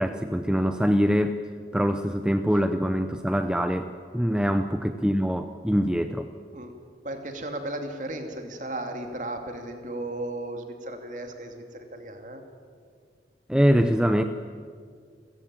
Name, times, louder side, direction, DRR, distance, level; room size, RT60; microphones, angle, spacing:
voice 1, 0.0-1.4 1.7-6.3 13.5-14.2, equal, 5° right, 8 dB, 0.6 m, -24 dB
voice 2, 7.0-12.4, right 1 dB, 45° right, 5 dB, 2.7 m, -35 dB
30.0 x 14.5 x 8.9 m, 2.1 s
head